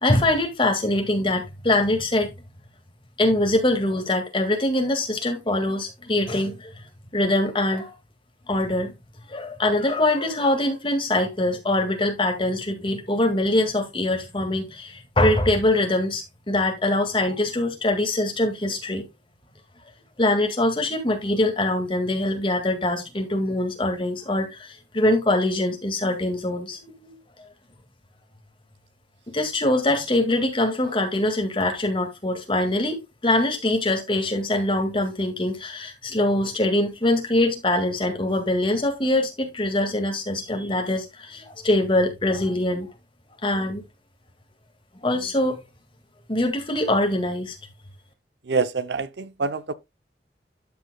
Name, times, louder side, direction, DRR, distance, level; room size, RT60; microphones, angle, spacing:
voice 1, 0.0-2.3 3.2-6.7 7.1-7.9 8.5-8.9 9.3-19.1 20.2-27.2 29.3-42.9 43.4-43.8 45.0-45.6 46.3-47.6, left 1 dB, 30° left, 1.9 m, -23 dB
voice 2, 48.5-49.7, right 4 dB, 75° right, 0.6 m, -26 dB
12.0 x 6.0 x 2.2 m
head